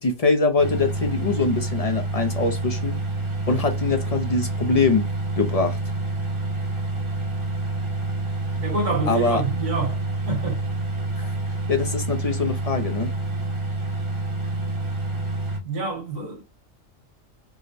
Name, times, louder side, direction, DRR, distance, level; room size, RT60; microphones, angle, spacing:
voice 1, 0.0-3.0 3.5-5.1 5.4-5.8 9.1-9.4 11.2-11.3 11.7-13.1, left 3 dB, 55° left, 0.4 m, -23 dB
sound 1, 0.6-15.6, right 2 dB, 30° right, 0.7 m, -28 dB
voice 2, 8.6-10.0 10.3-10.6 15.6-16.4, right 3 dB, 70° right, 1.7 m, -27 dB
4.7 x 2.1 x 2.6 m
omnidirectional pair, 1.4 m